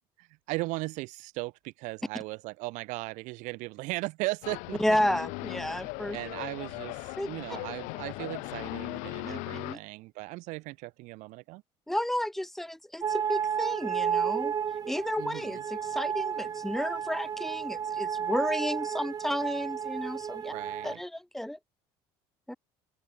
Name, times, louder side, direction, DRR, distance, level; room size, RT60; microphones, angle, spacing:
voice 1, 0.2-5.0 6.1-11.6 15.2-15.6 20.4-21.0, right 23 dB, 75° right, 3.9 m, -37 dB
sound 1, 4.4-9.8, left 28 dB, 75° left, 0.7 m, -38 dB
voice 2, 4.8-6.2 7.2-7.3 9.2-9.8 11.9-14.5 14.8-20.5 20.8-21.6 22.5-22.6, left 1 dB, ahead, 0.8 m, -32 dB
sound 2, 13.0-21.0, right 8 dB, 30° right, 0.4 m, -32 dB
open air
supercardioid pair, 80°, 13 cm